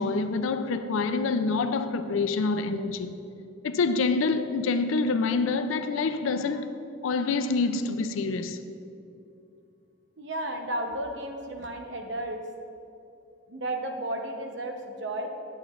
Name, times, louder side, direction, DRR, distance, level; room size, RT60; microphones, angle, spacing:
voice 1, 0.0-3.2 3.6-6.7 7.0-8.6, left 4 dB, 85° left, 0.4 m, -26 dB
voice 2, 10.2-12.4 13.5-15.3, right 1 dB, 65° right, 0.8 m, -33 dB
8.8 x 8.7 x 2.4 m
head